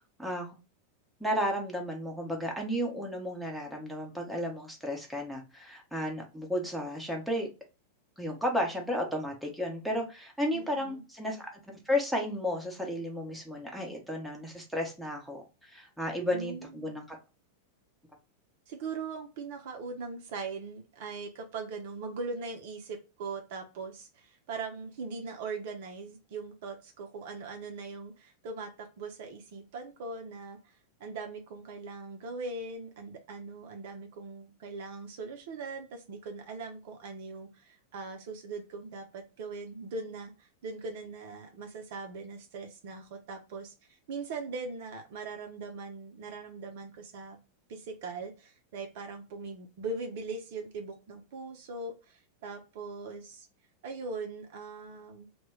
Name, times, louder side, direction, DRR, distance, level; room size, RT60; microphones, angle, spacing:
voice 1, 0.2-0.6 1.2-7.5 8.2-11.5 11.9-17.2, equal, ahead, 0 dB, 0.7 m, -33 dB
voice 2, 10.5-11.0 16.3-17.0 18.7-47.4 47.7-53.5 53.8-55.3, right 4 dB, 50° right, 4 dB, 0.5 m, -40 dB
2.1 x 2.1 x 3.4 m, 0.30 s
figure-of-eight pair, 90°, 0 cm